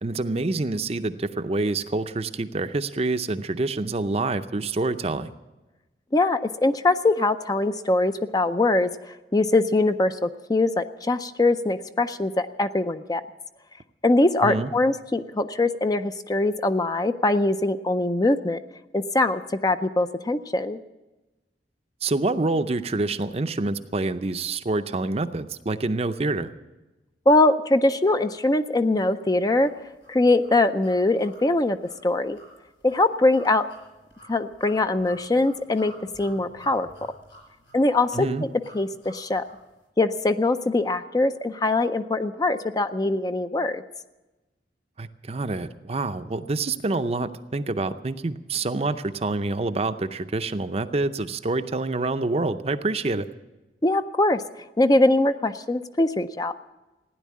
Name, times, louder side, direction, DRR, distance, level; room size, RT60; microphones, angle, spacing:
voice 1, 0.0-5.3 14.4-14.7 22.0-26.5 38.1-38.4 45.0-53.3, right 3 dB, 35° right, 10 dB, 0.6 m, -27 dB
voice 2, 6.1-8.9 9.3-13.2 14.0-18.6 18.9-20.8 27.3-29.7 30.1-31.8 32.0-32.4 32.8-33.7 34.3-35.9 36.2-36.9 37.7-38.5 38.7-39.4 40.0-43.8 53.8-54.4 54.8-56.5, left 2 dB, 20° left, 10 dB, 0.5 m, -22 dB
sound 1, 29.6-39.7, right 1 dB, 80° left, 5.8 m, -50 dB
16.0 x 10.0 x 8.4 m, 1.1 s
head